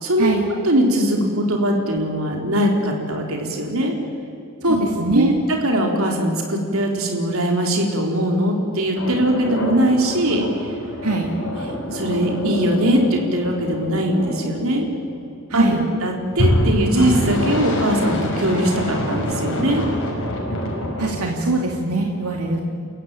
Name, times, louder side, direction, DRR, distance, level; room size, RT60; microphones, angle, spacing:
voice 1, 0.0-0.3 0.7-3.9 4.6-4.8 5.1-5.3 5.6-10.7 11.9-14.9 15.5-15.8 16.0-19.9, right 1 dB, 65° right, 2 dB, 4.1 m, -20 dB
voice 2, 4.6-5.4 11.0-11.3 15.5-15.8 21.0-22.6, right 2 dB, 90° right, 1 dB, 2.4 m, -21 dB
Rocket Launch, 9.0-15.3 16.3-21.2, equal, 60° left, 5.5 m, -26 dB
30.0 x 16.0 x 9.0 m, 2.6 s
head